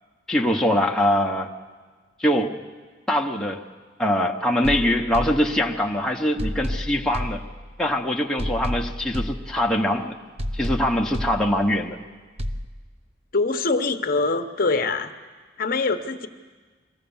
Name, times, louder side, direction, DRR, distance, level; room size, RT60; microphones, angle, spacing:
voice 1, 0.3-1.5 2.2-2.6 3.1-3.6 4.0-7.4 7.8-10.2 10.5-12.0, left 1 dB, 5° left, 0 dB, 1.0 m, -23 dB
sound 1, 4.6-5.9 6.4-7.9 8.4-9.9 10.4-11.9 12.4-12.7, equal, 35° right, 0.7 m, -31 dB
voice 2, 13.3-15.1 15.6-16.3, left 3 dB, 50° left, 7 dB, 0.9 m, -23 dB
23.0 x 16.0 x 7.1 m, 1.4 s
head